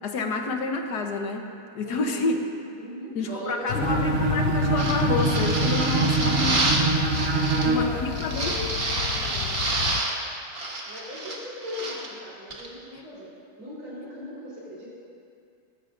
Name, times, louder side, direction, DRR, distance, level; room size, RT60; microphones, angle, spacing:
voice 1, 0.0-1.5 1.7-2.4 3.1-6.7 7.7-8.5, left 3 dB, 60° left, 4 dB, 1.3 m, -29 dB
voice 2, 1.8-2.3 2.8-4.3 7.3-9.9 10.9-14.9, left 1 dB, 85° right, -8 dB, 4.7 m, -39 dB
sound 1, 3.7-10.0, left 10 dB, 80° left, 0.9 m, -31 dB
Bowed string instrument, 3.7-8.0, right 4 dB, 50° right, 0.8 m, -25 dB
sound 2, 4.8-7.8 8.1-10.2 10.5-12.1 12.5-12.7, right 2 dB, 30° right, 1.4 m, -28 dB
18.5 x 15.5 x 2.6 m, 2.4 s
omnidirectional pair, 2.3 m